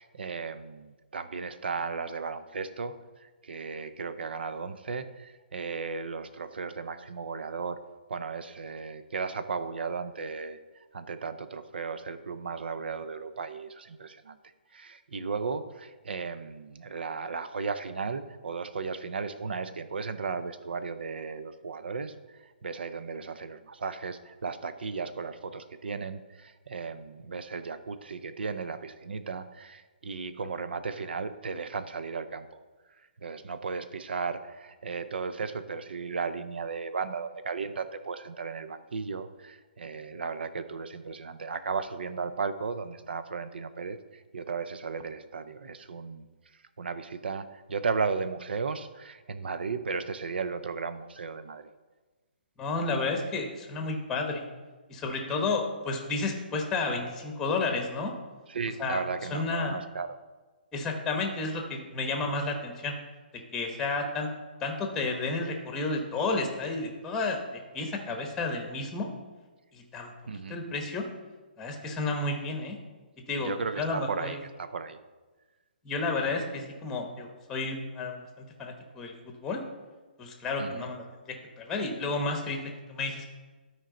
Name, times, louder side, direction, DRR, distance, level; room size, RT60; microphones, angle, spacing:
voice 1, 0.0-3.0 3.4-7.8 8.1-10.6 10.9-14.4 14.7-22.1 22.6-32.6 33.2-46.2 46.8-51.7 58.5-60.2 70.3-70.6 73.4-75.0 80.6-80.9, right 5 dB, 75° right, 12 dB, 0.6 m, -35 dB
voice 2, 52.6-54.4 54.9-58.1 58.8-59.0 59.3-59.8 60.7-62.9 63.5-64.3 64.6-69.1 69.7-70.1 70.5-71.1 71.6-72.8 73.3-74.4 75.8-79.6 80.2-82.6 82.9-83.3, left 3 dB, 10° left, 3 dB, 1.0 m, -31 dB
12.0 x 4.6 x 3.8 m, 1.3 s
hypercardioid pair, 150°, 6 cm